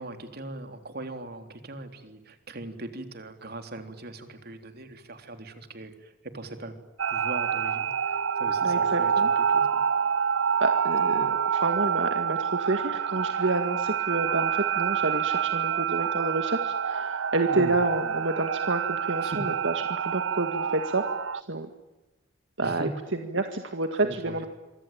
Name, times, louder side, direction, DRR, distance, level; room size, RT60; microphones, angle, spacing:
voice 1, 0.0-5.9 6.3-6.7 7.1-9.1 9.5-9.8 11.1-11.3 17.5-17.7 19.2-19.4 22.6-22.9 24.0-24.5, right 2 dB, 55° right, 7 dB, 3.5 m, -40 dB
sound 1, 7.0-21.4, right 7 dB, 90° right, 0.9 m, -27 dB
voice 2, 8.6-9.3 10.6-21.0 21.5-21.7 22.6-24.5, right 2 dB, 70° right, 6 dB, 2.0 m, -29 dB
26.5 x 24.5 x 8.9 m, 1.1 s
head